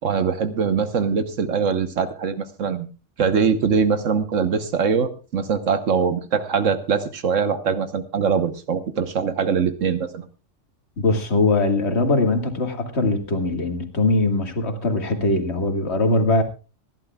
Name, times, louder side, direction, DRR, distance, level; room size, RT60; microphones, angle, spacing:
voice 1, 0.0-2.9 3.2-10.2, right 6 dB, 75° right, 10 dB, 1.4 m, -22 dB
voice 2, 11.0-16.4, left 2 dB, 55° left, 6 dB, 2.1 m, -21 dB
26.5 x 11.5 x 2.3 m, 0.32 s
omnidirectional pair, 1.3 m